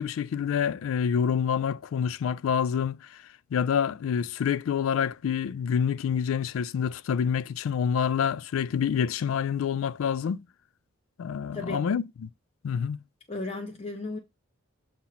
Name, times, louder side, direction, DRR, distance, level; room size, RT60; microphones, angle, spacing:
voice 1, 0.0-3.2 3.5-10.4 11.2-12.1 12.6-13.0, left 7 dB, 80° left, 0.3 m, -27 dB
voice 2, 11.5-12.0 13.3-14.2, left 2 dB, 30° left, 0.5 m, -35 dB
7.2 x 2.8 x 5.6 m
head